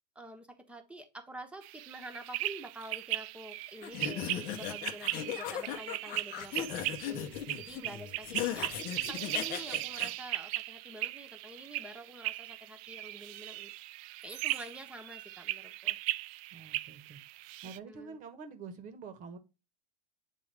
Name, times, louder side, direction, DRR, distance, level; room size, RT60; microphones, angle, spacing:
voice 1, 0.1-16.0 17.9-18.2, right 1 dB, 5° right, 1.1 m, -48 dB
sound 1, 1.6-17.8, right 17 dB, 55° right, 0.4 m, -38 dB
sound 2, 3.8-10.1, left 10 dB, 45° left, 0.8 m, -38 dB
voice 2, 16.5-17.2 17.6-19.4, right 5 dB, 40° right, 1.2 m, -46 dB
8.4 x 3.5 x 3.4 m
hypercardioid pair, 115°, 21 cm